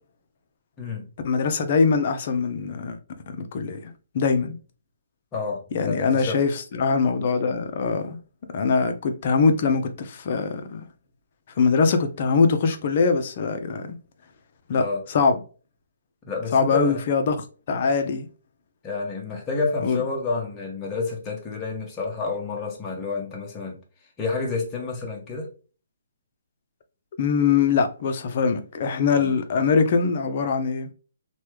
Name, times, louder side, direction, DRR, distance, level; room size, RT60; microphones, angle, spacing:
voice 1, 1.2-3.0 3.3-3.8 4.1-4.6 5.7-6.5 6.8-8.2 8.5-10.8 11.6-13.9 14.7-15.4 16.5-17.4 17.7-18.3 19.8-20.0 27.2-30.9, left 5 dB, 45° left, 0.5 m, -22 dB
voice 2, 5.3-6.4 14.8-15.0 16.3-17.0 18.8-23.8 24.2-25.5 29.2-29.3, left 3 dB, 20° left, 0.9 m, -29 dB
3.0 x 2.3 x 3.1 m
hypercardioid pair, 155°, 0 cm